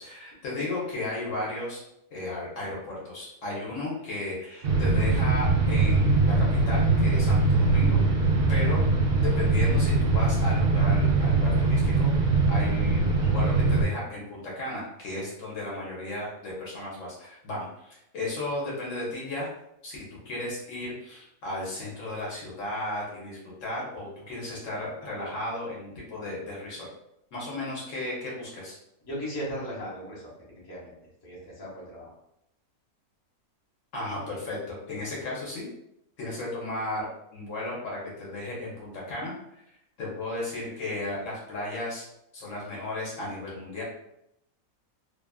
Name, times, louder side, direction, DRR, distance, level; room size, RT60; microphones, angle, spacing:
voice 1, 0.0-1.8 2.1-8.8 9.2-12.1 12.5-19.5 19.8-26.9 27.3-28.8 33.9-35.7 36.2-39.3 40.0-42.0 42.3-43.8, left 2 dB, 65° left, -5 dB, 1.1 m, -34 dB
sound 1, 4.6-13.8, right 3 dB, 65° right, 0.6 m, -22 dB
voice 2, 29.1-30.9 31.2-32.1, equal, 20° left, -7 dB, 0.7 m, -37 dB
2.8 x 2.3 x 2.2 m, 0.80 s
omnidirectional pair, 1.5 m